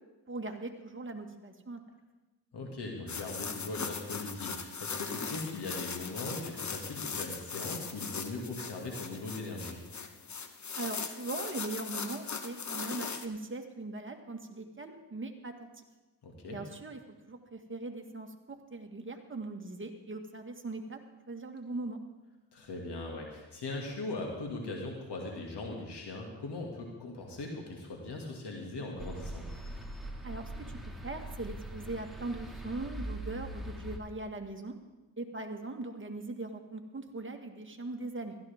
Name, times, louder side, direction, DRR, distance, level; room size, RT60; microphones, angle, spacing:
voice 1, 0.3-1.8 10.8-15.8 16.5-17.0 17.3-18.3 18.7-21.0 21.3-22.0 30.2-30.4 30.9-34.7 35.2-38.4, right 2 dB, 30° right, 4 dB, 1.8 m, -40 dB
voice 2, 2.5-9.8 16.2-16.6 22.5-29.5, left 2 dB, 70° left, 0 dB, 2.3 m, -40 dB
sound 1, 3.1-13.3, left 5 dB, 40° left, 1.2 m, -39 dB
sound 2, 29.0-34.0, right 1 dB, ahead, 2.1 m, -41 dB
16.0 x 13.5 x 3.6 m, 1.1 s
cardioid pair, 60°, 42 cm